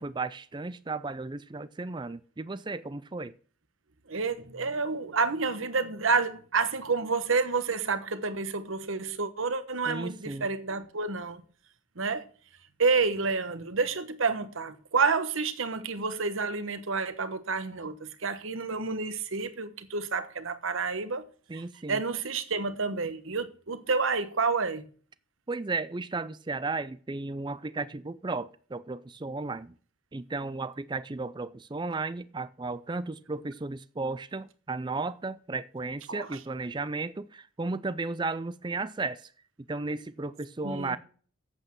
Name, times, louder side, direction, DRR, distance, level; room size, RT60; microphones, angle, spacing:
voice 1, 0.0-3.3 9.9-10.5 21.5-22.0 25.5-29.7 30.1-39.3 39.7-41.0, right 3 dB, 20° right, 0.4 m, -34 dB
voice 2, 4.1-11.4 12.0-12.2 12.8-21.2 21.5-21.6 21.9-24.8 36.1-36.3 40.6-41.0, right 4 dB, 70° right, 1.2 m, -29 dB
8.3 x 7.9 x 6.1 m
head